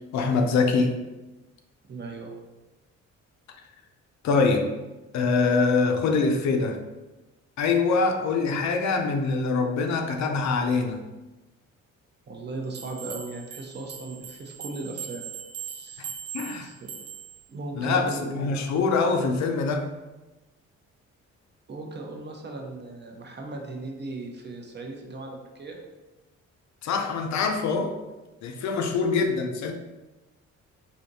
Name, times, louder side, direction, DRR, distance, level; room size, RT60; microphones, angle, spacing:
voice 1, 0.1-1.0 4.2-4.7 5.1-6.8 7.6-11.0 16.0-16.1 16.3-16.7 17.8-19.9 26.8-28.0 28.4-29.7, left 4 dB, 65° left, 4 dB, 0.5 m, -24 dB
voice 2, 1.9-2.3 12.3-15.2 15.6-16.1 16.6-16.9 17.5-18.7 21.7-25.8, right 3 dB, 35° right, 2 dB, 0.6 m, -37 dB
sound 1, 12.7-17.4, right 8 dB, 75° right, 0.6 m, -40 dB
3.4 x 2.7 x 2.7 m, 1.1 s
cardioid pair, 90°, 30 cm